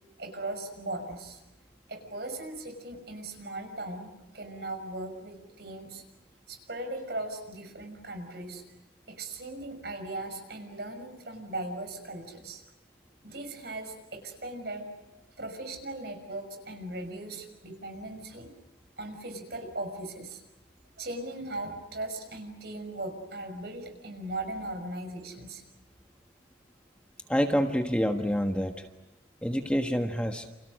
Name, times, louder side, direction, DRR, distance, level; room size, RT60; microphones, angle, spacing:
voice 1, 0.2-1.4 1.9-4.1 4.3-6.0 6.5-8.6 9.1-12.6 13.2-14.9 15.4-18.5 19.0-20.4 21.0-25.6, right 2 dB, 60° right, 7 dB, 6.0 m, -38 dB
voice 2, 27.3-28.9 29.4-30.5, equal, 5° left, 4 dB, 1.4 m, -27 dB
29.5 x 29.5 x 6.5 m, 0.92 s
head